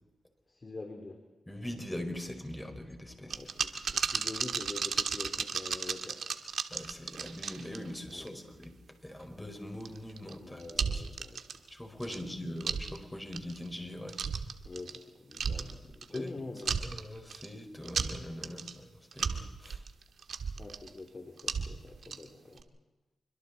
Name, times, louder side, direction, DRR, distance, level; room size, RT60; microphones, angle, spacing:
voice 1, 0.5-1.2 3.2-6.2 8.1-8.4 10.4-11.6 12.0-12.4 14.6-16.9 20.6-22.7, left 3 dB, 40° left, 3 dB, 3.1 m, -45 dB
voice 2, 1.5-3.4 6.7-8.7 9.0-10.6 11.7-14.2 16.1-16.3 16.8-19.8, left 1 dB, 10° left, 4 dB, 5.0 m, -42 dB
sound 1, 3.3-8.3 8.6-8.7 9.8-10.3 10.6-11.7 12.0-12.2 12.6-13.0 13.3-13.7 14.1-15.0 15.3-16.3 16.6-17.5 17.8-18.7 19.1-20.9 21.4-22.3 22.6-22.7, right 6 dB, 70° right, 1.7 m, -34 dB
27.0 x 24.5 x 4.2 m, 1.1 s
cardioid pair, 60°, 0 cm